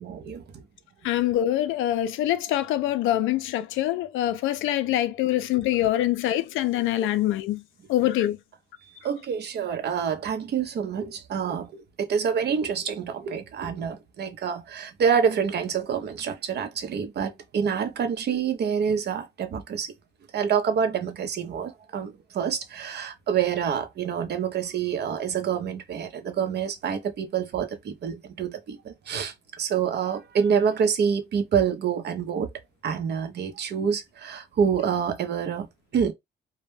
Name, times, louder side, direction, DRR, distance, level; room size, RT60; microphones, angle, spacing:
voice 1, 1.0-7.6 7.9-8.4, left 13 dB, 85° left, 0.4 m, -24 dB
voice 2, 9.0-19.9 20.3-32.5 32.8-35.7 35.9-36.1, right 7 dB, 55° right, 0.6 m, -27 dB
2.1 x 2.1 x 3.1 m
cardioid pair, 90°, 20 cm